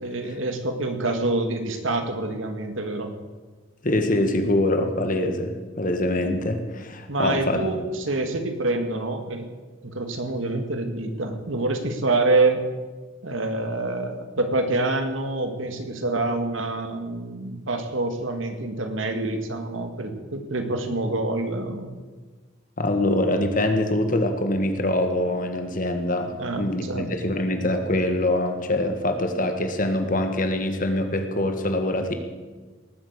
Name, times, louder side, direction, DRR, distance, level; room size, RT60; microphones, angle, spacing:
voice 1, 0.0-3.1 7.1-9.5 9.8-12.6 13.2-21.9 26.4-27.1, right 2 dB, 80° right, 6 dB, 2.0 m, -26 dB
voice 2, 3.8-7.6 22.8-32.1, left 1 dB, 40° left, 6 dB, 1.8 m, -24 dB
19.0 x 9.2 x 8.2 m, 1.3 s
head